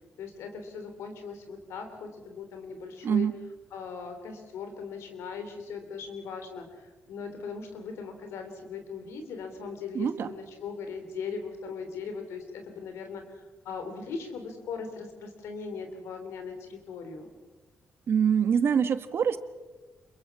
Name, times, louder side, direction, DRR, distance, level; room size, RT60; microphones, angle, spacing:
voice 1, 0.2-3.3 3.7-17.3, left 5 dB, 90° left, 6 dB, 3.5 m, -39 dB
voice 2, 3.0-3.4 9.9-10.3 18.1-19.4, right 7 dB, 65° right, 11 dB, 1.4 m, -24 dB
27.0 x 22.5 x 6.1 m, 1.2 s
cardioid pair, 70°, 4 cm